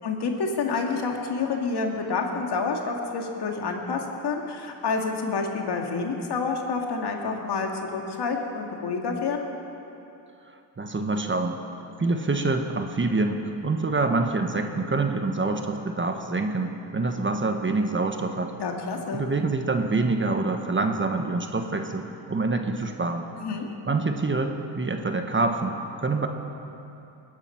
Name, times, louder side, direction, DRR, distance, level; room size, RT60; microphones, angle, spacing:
voice 1, 0.0-9.5 18.6-19.2 23.4-23.7, left 4 dB, 55° left, 2 dB, 2.2 m, -28 dB
voice 2, 10.8-11.6 12.0-18.5 19.1-23.3 23.9-26.3, right 3 dB, 25° right, 5 dB, 1.3 m, -26 dB
21.0 x 10.0 x 5.8 m, 2.8 s
cardioid pair, 80°, 47 cm